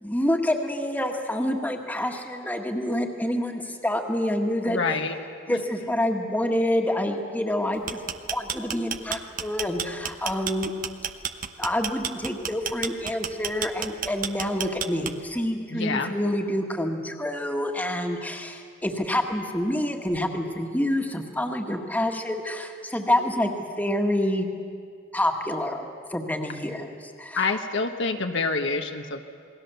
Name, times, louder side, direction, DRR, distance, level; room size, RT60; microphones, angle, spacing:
voice 1, 0.0-4.8 5.5-8.0 8.3-10.7 11.6-24.5 25.1-26.9 27.2-27.6, left 1 dB, 10° left, 3 dB, 1.7 m, -27 dB
voice 2, 4.6-5.1 5.5-5.6 15.7-16.1 27.4-29.2, left 4 dB, 65° left, 5 dB, 1.3 m, -27 dB
sound 1, 7.7-15.4, right 8 dB, 40° right, 0.9 m, -31 dB
28.0 x 20.5 x 7.0 m, 2.2 s
head